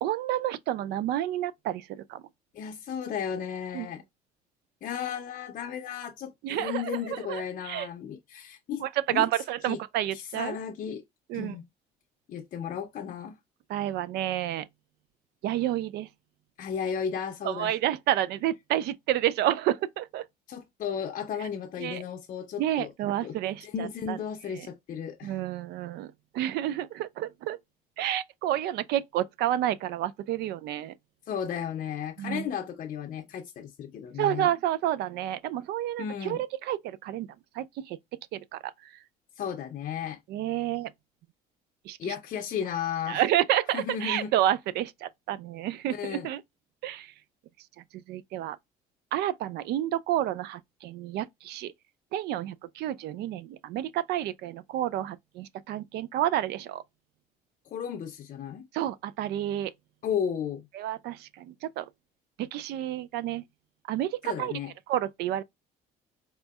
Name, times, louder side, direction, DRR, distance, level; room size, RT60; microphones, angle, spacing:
voice 1, 0.0-2.2 3.7-3.9 6.4-7.9 8.8-10.6 11.3-11.5 13.7-14.7 15.4-16.1 17.4-20.2 21.8-22.0 22.6-24.2 25.2-27.6 28.0-30.9 32.2-32.4 34.2-37.3 37.6-38.0 38.3-38.6 40.3-40.9 41.9-42.1 43.1-46.4 46.8-47.1 47.9-48.6 49.1-51.7 52.1-56.8 58.7-59.7 60.7-61.8 62.4-63.4 63.9-64.5 64.9-65.4, right 12 dB, 75° right, 0.4 m, -30 dB
voice 2, 2.5-4.0 4.8-9.3 9.7-9.8 10.1-11.0 11.3-11.6 12.3-13.4 16.6-17.7 20.5-22.9 23.2-23.4 23.6-25.4 31.3-34.5 36.0-36.4 39.4-40.2 42.0-43.2 43.7-44.3 45.9-46.3 57.7-58.6 60.0-60.7 64.2-64.7, left 8 dB, 50° left, 0.5 m, -34 dB
4.2 x 2.6 x 2.3 m
cardioid pair, 110°, 17 cm